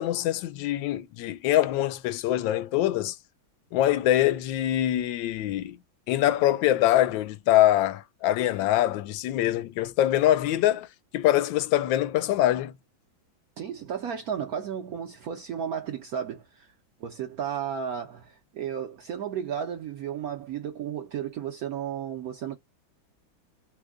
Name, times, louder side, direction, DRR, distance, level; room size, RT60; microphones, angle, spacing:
voice 1, 0.0-3.2 3.7-5.8 6.1-10.9 11.1-12.7, left 13 dB, 75° left, 1.3 m, -24 dB
voice 2, 13.6-16.7 17.0-22.5, right 8 dB, 70° right, 0.9 m, -33 dB
3.3 x 2.1 x 3.4 m
omnidirectional pair, 2.2 m